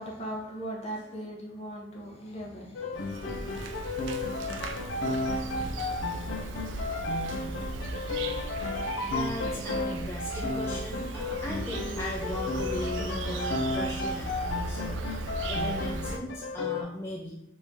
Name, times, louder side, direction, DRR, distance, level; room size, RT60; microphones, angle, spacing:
voice 1, 0.0-3.7, right 1 dB, 35° left, -1 dB, 0.8 m, -39 dB
sound 1, 2.7-16.8, left 2 dB, 80° left, 0.5 m, -33 dB
Insect, 2.9-16.2, right 2 dB, 85° right, 0.4 m, -37 dB
voice 2, 9.0-14.9 15.5-17.4, left 1 dB, 15° left, -3 dB, 0.4 m, -38 dB
3.1 x 2.7 x 3.4 m, 0.78 s
head